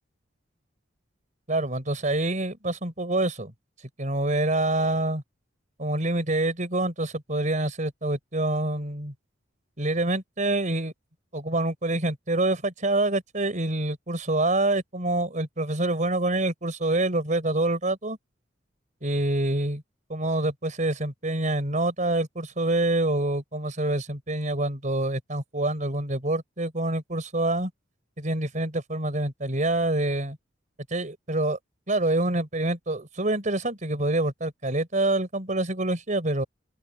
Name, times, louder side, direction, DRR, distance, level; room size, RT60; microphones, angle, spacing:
voice 1, 1.5-3.5 4.0-5.2 5.8-9.1 9.8-10.9 11.3-18.2 19.0-19.8 20.1-27.7 28.2-30.4 30.9-31.6 31.9-36.4, right 2 dB, 40° right, 4.0 m, -26 dB
open air
head